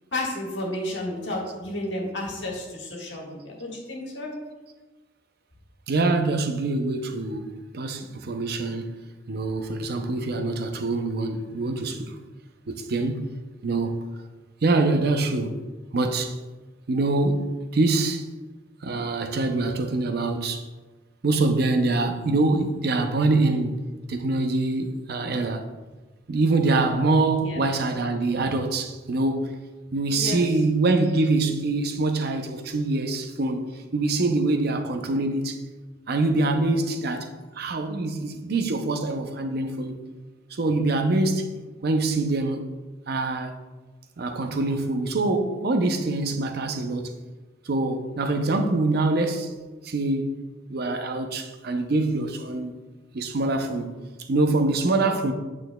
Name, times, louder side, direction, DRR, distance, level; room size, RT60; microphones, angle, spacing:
voice 1, 0.1-4.3 27.4-27.6 30.1-30.5, left 1 dB, 85° left, 1.6 m, -32 dB
voice 2, 5.9-9.0 9.3-12.1 12.7-13.2 13.6-14.0 14.6-15.6 15.9-16.4 16.9-18.2 18.8-20.6 21.2-23.8 24.1-25.7 26.3-29.5 29.9-35.6 36.1-37.3 37.6-40.0 40.5-41.5 41.8-42.7 43.1-43.5 44.2-47.2 47.7-49.5 49.8-50.4 50.7-52.7 53.1-53.9 54.2-55.3, right 2 dB, 60° right, 0.6 m, -24 dB
8.7 x 6.2 x 2.2 m
head